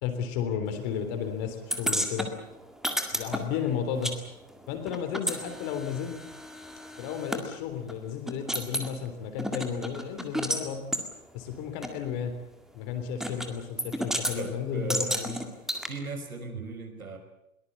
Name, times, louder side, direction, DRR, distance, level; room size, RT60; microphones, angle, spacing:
voice 1, 0.0-2.3 3.1-4.1 4.7-6.2 7.0-10.9 11.3-12.3 12.7-15.4, left 8 dB, 30° left, 7 dB, 3.7 m, -33 dB
sound 1, 1.7-4.2 4.4-7.4 7.9-8.0 8.3-8.9 9.4-10.6 10.9-11.1 11.8-11.9 13.2-13.5 13.8-14.4 14.9-15.9, equal, ahead, 1.9 m, -32 dB
voice 2, 14.3-15.2 15.9-17.2, right 4 dB, 70° right, 5 dB, 5.6 m, -37 dB
22.5 x 20.0 x 8.6 m, 0.81 s
figure-of-eight pair, 115°, 43 cm